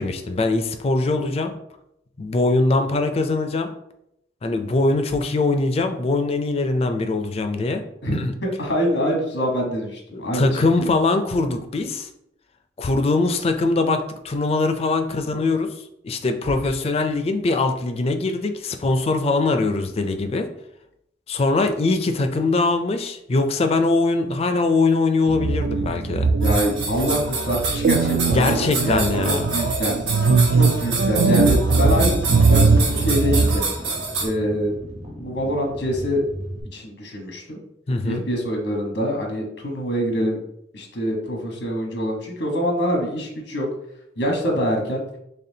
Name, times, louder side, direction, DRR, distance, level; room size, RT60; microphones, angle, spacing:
voice 1, 0.0-1.5 2.2-3.7 4.4-7.8 8.1-8.3 10.1-12.1 12.8-15.7 16.0-20.5 21.3-26.3 28.3-29.5 37.9-38.2, left 3 dB, 35° left, 7 dB, 0.4 m, -22 dB
voice 2, 8.0-10.9 26.4-29.9 30.5-33.6 34.2-34.8 35.2-36.2 36.7-37.6 38.0-40.4 40.7-43.7 44.2-45.0, equal, 90° left, 1 dB, 1.1 m, -25 dB
sound 1, 25.3-33.6, right 4 dB, 65° right, 0.3 m, -20 dB
sound 2, 26.4-34.3, right 3 dB, 85° right, 1.1 m, -28 dB
sound 3, 31.6-36.6, equal, 45° right, 0.8 m, -37 dB
4.1 x 3.3 x 2.7 m, 0.78 s
head